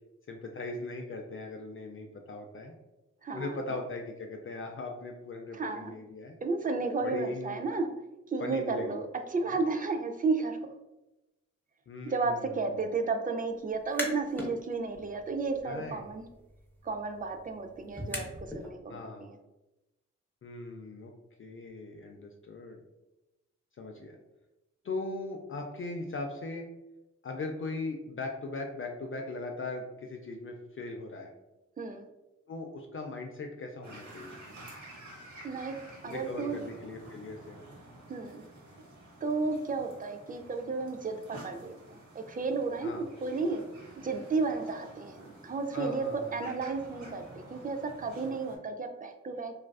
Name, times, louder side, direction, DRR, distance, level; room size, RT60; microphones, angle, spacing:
voice 1, 0.3-2.7 3.3-6.3 7.0-7.6 8.4-9.0 9.5-9.6 11.9-12.8 15.6-16.0 18.9-19.2 20.4-21.1 21.4-22.8 23.8-24.2 24.8-26.7 27.2-31.3 32.5-34.4 36.1-37.6 42.8-43.1 45.7-46.4, left 3 dB, 45° left, 2 dB, 0.4 m, -39 dB
voice 2, 3.2-3.6 5.5-5.9 6.4-7.9 8.3-10.6 12.0-16.2 16.8-18.3 18.6-19.3 31.8-32.0 35.4-35.7 36.0-36.6 38.1-38.5 39.2-41.7 42.1-43.6 44.0-49.5, right 4 dB, 30° right, 6 dB, 0.4 m, -33 dB
sound 1, 13.7-14.5 14.9-18.7, left 1 dB, 5° left, 0.7 m, -41 dB
sound 2, 33.8-48.6, right 1 dB, 65° right, 0.9 m, -50 dB
2.4 x 2.2 x 2.2 m, 0.98 s
cardioid pair, 40°, 31 cm